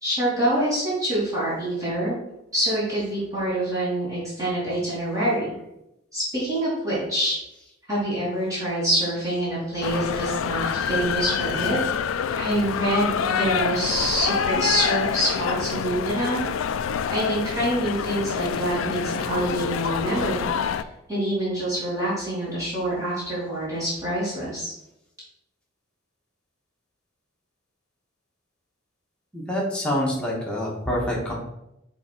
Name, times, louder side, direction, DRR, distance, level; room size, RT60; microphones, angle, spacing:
voice 1, 0.0-2.2 2.5-5.5 6.1-7.4 7.9-11.8 12.3-16.4 17.1-24.7, right 1 dB, 15° right, -9 dB, 2.4 m, -26 dB
sound 1, 9.8-20.8, left 7 dB, 80° left, 0.4 m, -27 dB
voice 2, 29.3-31.3, equal, 5° left, -5 dB, 1.5 m, -26 dB
6.0 x 3.7 x 4.6 m, 0.86 s
head